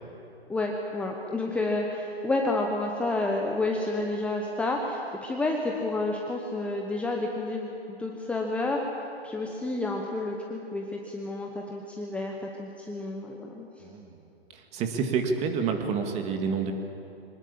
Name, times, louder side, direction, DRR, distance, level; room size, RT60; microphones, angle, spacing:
voice 1, 0.5-7.7 8.0-8.8 9.2-13.7, left 2 dB, 5° left, 0 dB, 1.0 m, -30 dB
voice 2, 13.8-14.2 14.5-16.7, right 5 dB, 20° right, 5 dB, 2.1 m, -28 dB
23.5 x 19.0 x 8.6 m, 2.8 s
hypercardioid pair, 140°, 32 cm